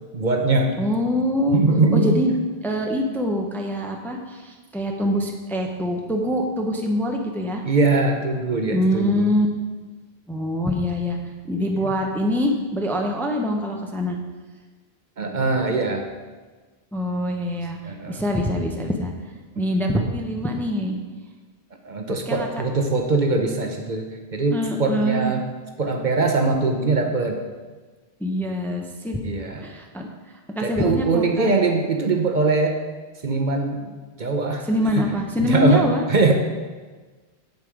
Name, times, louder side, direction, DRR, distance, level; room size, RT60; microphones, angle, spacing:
voice 1, 0.1-0.8 1.5-2.2 7.6-9.3 11.6-11.9 15.2-16.0 17.8-18.2 19.6-19.7 21.8-25.4 25.8-27.4 29.2-29.7 30.6-32.8 33.2-33.9 34.2-34.6 34.9-35.1 35.4-36.3, right 3 dB, 50° right, 3 dB, 0.9 m, -22 dB
voice 2, 0.8-1.6 1.9-2.3 2.6-7.6 8.7-9.5 10.3-11.2 11.5-14.2 16.9-19.1 19.6-21.0 22.1-22.6 24.5-25.3 28.2-29.2 29.6-31.5 34.7-36.0, left 1 dB, ahead, 2 dB, 0.7 m, -24 dB
7.9 x 7.3 x 5.0 m, 1.3 s
omnidirectional pair, 1.0 m